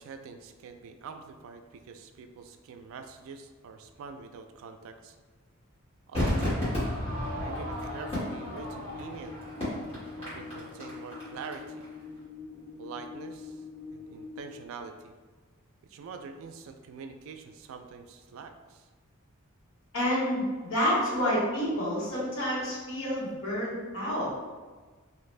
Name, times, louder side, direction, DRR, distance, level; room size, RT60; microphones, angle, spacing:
voice 1, 0.0-5.2 6.1-6.6 7.4-9.4 10.2-11.9 12.8-13.6 13.9-15.1 15.9-18.9, right 5 dB, 70° right, 7 dB, 0.3 m, -45 dB
Crowd / Fireworks, 6.1-11.5 11.8-11.9, left 1 dB, 30° left, 1.5 m, -33 dB
sound 1, 7.0-14.5, left 4 dB, ahead, 1.0 m, -44 dB
voice 2, 19.9-24.3, equal, 65° left, -6 dB, 1.1 m, -29 dB
2.8 x 2.5 x 3.1 m, 1.4 s
head